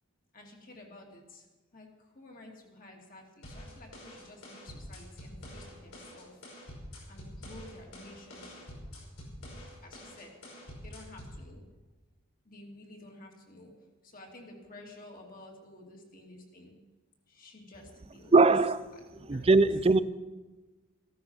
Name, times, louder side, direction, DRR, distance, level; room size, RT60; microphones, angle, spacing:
voice 1, 0.3-1.4 1.7-1.9 2.1-6.4 7.1-8.7 9.0-9.1 9.8-10.4 10.8-11.6 12.4-16.8 17.3-18.5 18.9-19.7, left 1 dB, 40° left, 1 dB, 2.4 m, -52 dB
sound 1, 3.4-11.4, equal, 85° left, 5.5 m, -46 dB
voice 2, 18.3-18.8 19.3-20.0, right 3 dB, 25° right, 15 dB, 0.4 m, -21 dB
15.0 x 13.5 x 5.6 m, 1.2 s
head